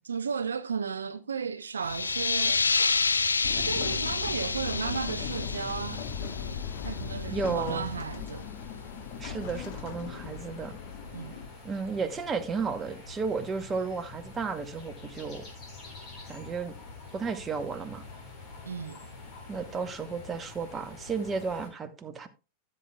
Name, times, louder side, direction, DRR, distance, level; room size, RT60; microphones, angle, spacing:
voice 1, 0.1-2.7 3.6-8.5 11.1-11.4 18.7-19.0, right 6 dB, 70° right, 0.4 m, -35 dB
sound 1, 1.8-7.2, left 4 dB, 75° left, 0.4 m, -29 dB
sound 2, 1.8-21.7, left 3 dB, 30° left, 4.0 m, -47 dB
sound 3, 3.4-11.5, left 7 dB, 50° left, 1.1 m, -38 dB
voice 2, 7.3-7.9 9.2-10.8 11.6-15.4 16.3-16.8 17.1-18.0 19.5-22.3, right 5 dB, 20° right, 1.0 m, -33 dB
15.0 x 7.8 x 2.2 m
figure-of-eight pair, 90°, 0 cm